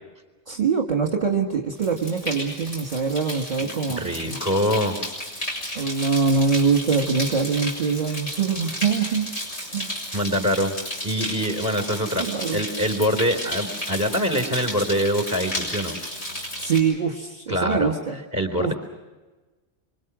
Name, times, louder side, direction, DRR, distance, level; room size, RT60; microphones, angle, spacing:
voice 1, 0.5-4.4 5.7-9.3 9.7-10.0 12.2-12.6 16.6-18.2 18.6-18.7, right 5 dB, 40° right, 2 dB, 1.7 m, -24 dB
sound 1, 1.8-16.8, equal, 80° left, 7.3 m, -33 dB
voice 2, 4.0-5.0 10.1-10.7 11.0-16.0 17.5-18.7, equal, 15° right, 4 dB, 4.0 m, -24 dB
26.0 x 25.5 x 6.3 m, 1.2 s
omnidirectional pair, 1.2 m